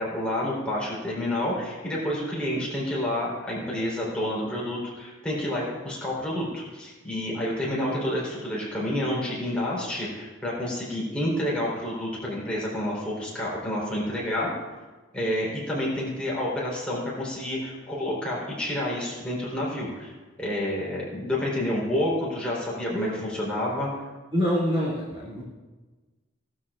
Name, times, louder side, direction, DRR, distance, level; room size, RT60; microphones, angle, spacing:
voice 1, 0.0-14.5 15.1-20.1 20.4-23.9, left 1 dB, 5° left, -6 dB, 3.9 m, -29 dB
voice 2, 22.9-23.2 24.3-25.4, equal, 25° right, -9 dB, 2.8 m, -26 dB
18.0 x 13.0 x 2.5 m, 1.3 s
head